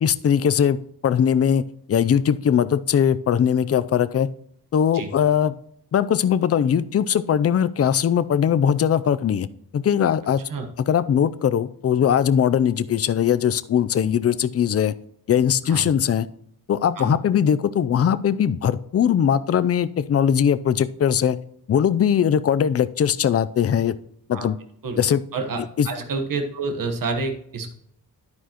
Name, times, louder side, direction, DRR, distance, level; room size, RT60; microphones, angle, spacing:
voice 1, 0.0-0.8 1.0-4.3 4.7-5.5 5.9-9.5 9.7-10.4 10.8-14.9 15.3-16.3 16.7-21.4 21.7-24.0 24.3-24.6 25.0-25.2 25.8-25.9, left 8 dB, 40° left, 14 dB, 0.4 m, -20 dB
voice 2, 25.3-27.7, right 3 dB, 60° right, 5 dB, 1.2 m, -28 dB
10.5 x 9.5 x 2.9 m, 0.70 s
wide cardioid pair, 150°, 38 cm